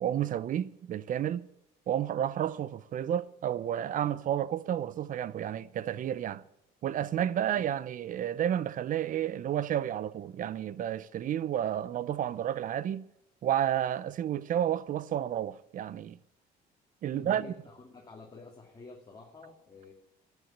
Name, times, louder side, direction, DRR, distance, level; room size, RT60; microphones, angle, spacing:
voice 1, 0.0-1.4 1.9-6.4 6.8-13.0 13.4-16.2 17.0-17.5, right 10 dB, 55° right, 0.7 m, -31 dB
voice 2, 17.1-19.9, left 4 dB, 25° left, 2.5 m, -49 dB
14.0 x 8.2 x 8.6 m
cardioid pair, 110°, 17 cm